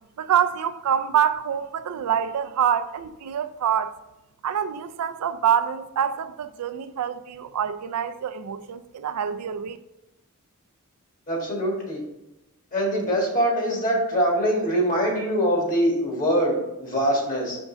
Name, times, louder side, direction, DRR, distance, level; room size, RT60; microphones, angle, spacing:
voice 1, 0.2-4.0 4.4-9.8, right 8 dB, 85° right, 0.4 m, -26 dB
voice 2, 11.3-12.0 12.7-17.6, equal, 40° left, 1.8 m, -23 dB
5.2 x 3.6 x 5.0 m
head